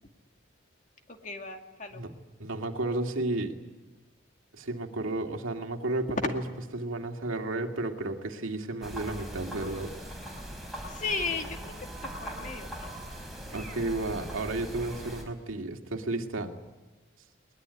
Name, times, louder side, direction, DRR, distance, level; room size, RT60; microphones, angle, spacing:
voice 1, 1.1-2.0 6.1-6.3 10.9-12.9, left 3 dB, 40° left, 4 dB, 2.2 m, -35 dB
voice 2, 2.4-3.6 4.5-6.1 6.7-9.9 13.5-16.5, right 2 dB, 85° right, 4 dB, 2.3 m, -32 dB
sound 1, 8.8-15.2, right 1 dB, ahead, 4.6 m, -40 dB
21.5 x 20.5 x 9.6 m, 1.1 s
head